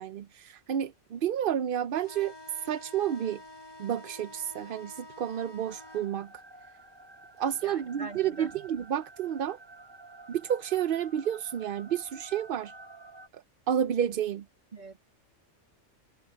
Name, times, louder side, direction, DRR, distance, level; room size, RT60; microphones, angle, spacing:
voice 1, 0.0-3.4 3.8-6.3 7.4-9.6 10.3-12.7 13.3-14.4, right 9 dB, 55° right, 0.7 m, -30 dB
sound 1, 2.0-6.1, left 1 dB, 25° left, 0.9 m, -48 dB
sound 2, 5.7-13.3, right 2 dB, 20° right, 1.1 m, -51 dB
voice 2, 7.6-8.5 14.7-15.0, right 3 dB, 40° right, 2.5 m, -43 dB
omnidirectional pair, 1.3 m